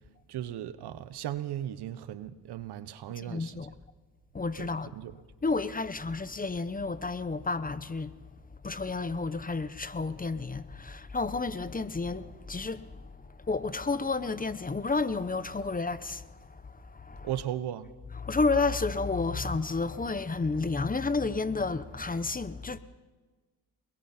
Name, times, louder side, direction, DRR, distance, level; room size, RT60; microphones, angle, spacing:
voice 1, 0.3-3.7 4.6-5.2 17.2-17.9, right 11 dB, 75° right, 1.2 m, -37 dB
voice 2, 3.2-3.7 4.3-4.9 5.4-8.2 8.6-17.3 18.1-22.8, left 3 dB, 20° left, 1.0 m, -31 dB
28.5 x 21.0 x 4.5 m
cardioid pair, 80°, 40 cm